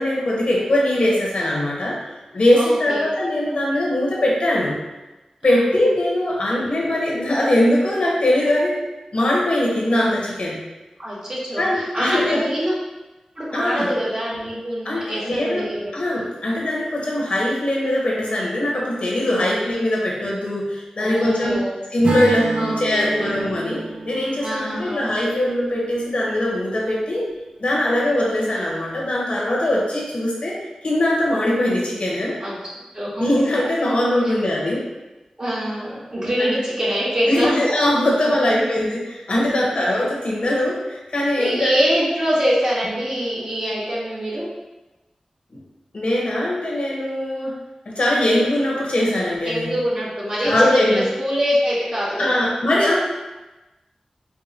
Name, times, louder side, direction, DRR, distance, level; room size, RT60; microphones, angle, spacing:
voice 1, 0.0-2.0 2.3-4.8 5.4-8.8 9.1-10.6 11.6-12.5 13.5-13.9 14.8-15.7 15.9-21.6 21.9-27.2 27.6-30.5 30.8-32.4 33.2-34.8 37.2-41.8 45.9-47.6 47.9-49.7 50.4-51.0 52.2-53.0, left 1 dB, 70° left, -4 dB, 0.9 m, -21 dB
voice 2, 2.6-3.1 5.5-5.7 11.0-12.8 13.3-15.9 19.4-19.5 21.0-21.8 22.5-23.3 24.4-25.1 32.4-32.6 32.9-33.6 35.4-37.6 38.0-38.6 39.4-39.8 41.4-44.5 49.4-52.4, equal, 40° right, -8 dB, 1.3 m, -25 dB
Acoustic guitar / Strum, 22.0-26.3, right 3 dB, 70° right, 0.5 m, -29 dB
4.6 x 2.1 x 2.7 m, 1.1 s
wide cardioid pair, 60°, 2 cm